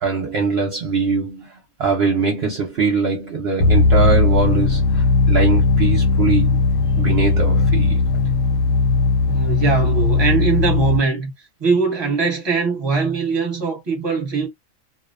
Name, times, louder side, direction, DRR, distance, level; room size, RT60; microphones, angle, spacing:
voice 1, 0.0-6.6 7.0-8.0, right 4 dB, 55° right, 0.8 m, -22 dB
sound 1, 3.6-11.0, left 3 dB, 85° left, 1.0 m, -17 dB
voice 2, 9.3-14.5, right 4 dB, 20° right, 0.9 m, -21 dB
2.5 x 2.1 x 2.4 m
omnidirectional pair, 1.4 m